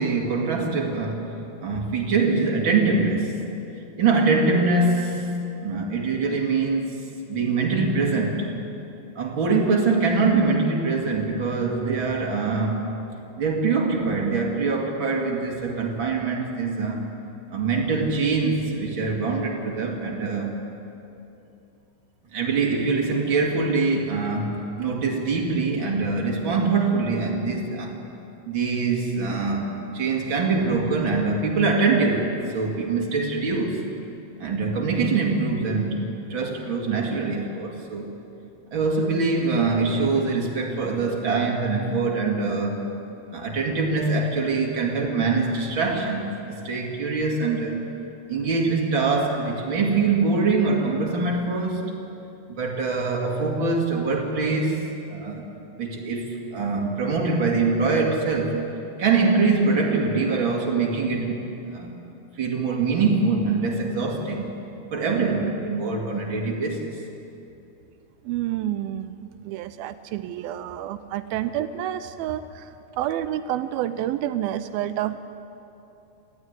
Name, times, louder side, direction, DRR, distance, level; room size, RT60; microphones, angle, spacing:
voice 1, 0.0-1.3 1.6-3.4 4.0-5.3 5.6-6.9 7.3-8.5 9.2-12.9 13.4-17.1 17.5-20.6 22.3-28.0 28.5-33.9 34.4-38.1 38.7-42.8 43.3-47.9 48.3-51.9 52.5-55.4 55.8-58.7 59.0-61.4 61.6-62.0 62.4-64.5 64.9-67.0, right 4 dB, 35° right, 0 dB, 2.6 m, -24 dB
voice 2, 68.3-72.7 73.0-75.2, right 12 dB, 80° right, 11 dB, 2.3 m, -29 dB
18.5 x 14.5 x 9.8 m, 2.8 s
omnidirectional pair, 4.4 m